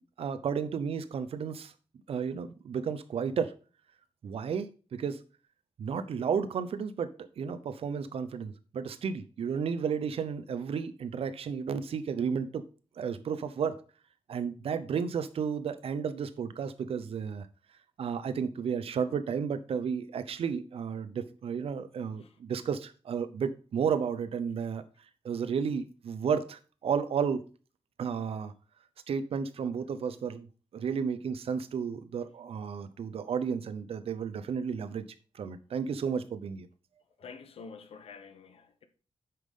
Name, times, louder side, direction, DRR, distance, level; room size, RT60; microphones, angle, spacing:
voice 1, 0.2-1.7 2.1-3.5 4.2-5.2 5.8-12.6 13.0-13.8 14.3-17.5 18.0-24.8 25.2-27.4 28.0-28.5 29.1-30.5 30.7-35.0 35.3-36.7, right 6 dB, 75° right, 0.7 m, -32 dB
voice 2, 37.2-38.9, left 5 dB, 75° left, 0.9 m, -48 dB
8.4 x 5.8 x 3.7 m
wide cardioid pair, 175°, 10 cm